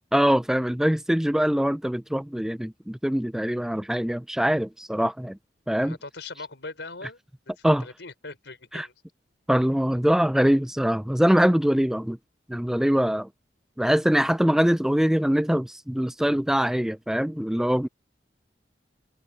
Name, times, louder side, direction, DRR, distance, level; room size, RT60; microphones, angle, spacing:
voice 1, 0.1-5.4 5.7-6.0 7.6-7.8 8.7-8.9 9.5-12.2 12.5-13.3 13.8-17.9, equal, 5° right, 0.3 m, -23 dB
voice 2, 5.8-7.2 7.5-8.9, left 3 dB, 85° left, 4.6 m, -40 dB
head